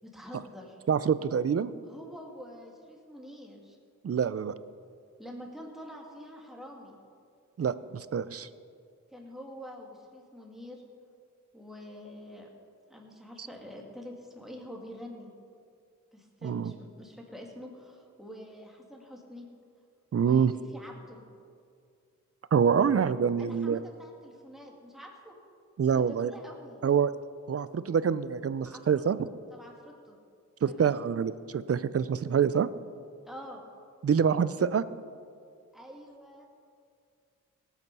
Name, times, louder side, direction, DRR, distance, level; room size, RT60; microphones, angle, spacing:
voice 1, 0.0-0.8 1.9-3.8 5.2-7.0 9.1-10.8 11.5-12.5 12.9-15.3 16.1-19.5 20.2-21.2 23.4-25.3 25.8-26.9 28.7-29.0 29.5-30.2 30.7-31.0 33.3-33.7 35.7-36.5, equal, ahead, -1 dB, 2.5 m, -46 dB
voice 2, 0.9-1.7 4.0-4.5 7.6-8.5 13.4-13.5 16.4-16.7 20.1-20.5 22.5-23.8 25.8-26.3 26.8-27.1 27.5-29.3 30.6-32.7 34.0-34.8, right 7 dB, 50° right, 15 dB, 0.5 m, -26 dB
18.0 x 8.3 x 5.5 m, 2.3 s
wide cardioid pair, 85°, 31 cm